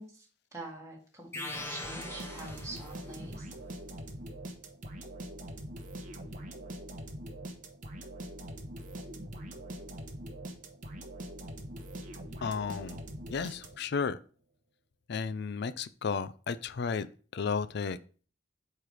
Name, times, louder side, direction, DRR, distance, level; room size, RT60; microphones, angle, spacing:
voice 1, 0.0-3.5, right 2 dB, 15° right, -2 dB, 1.9 m, -45 dB
sound 1, 1.3-3.2, left 1 dB, 15° left, 1.0 m, -41 dB
sound 2, 1.8-14.0, right 1 dB, 45° right, 1.0 m, -43 dB
voice 2, 12.4-13.0 13.3-14.2 15.1-17.1 17.3-18.0, left 5 dB, 60° left, 15 dB, 0.4 m, -33 dB
8.5 x 3.3 x 4.9 m, 0.41 s
head